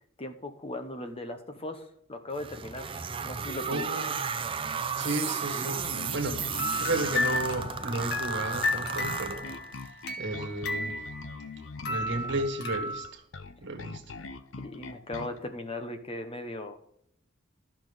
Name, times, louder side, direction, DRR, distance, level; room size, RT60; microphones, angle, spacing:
voice 1, 0.2-1.8 2.1-3.8 14.6-16.8, left 1 dB, 30° left, 7 dB, 1.0 m, -38 dB
sound 1, 2.3-9.9, right 6 dB, 25° right, 0.6 m, -34 dB
voice 2, 3.6-4.2 5.0-9.5 10.2-11.0 11.8-13.2 13.6-14.0, right 2 dB, 65° right, 5 dB, 1.6 m, -33 dB
Bass guitar, 5.8-15.4, left 4 dB, 80° left, 0.7 m, -42 dB
sound 2, 6.5-11.5 11.8-13.1, left 2 dB, 60° left, 1.3 m, -33 dB
13.0 x 5.9 x 5.1 m, 0.69 s
head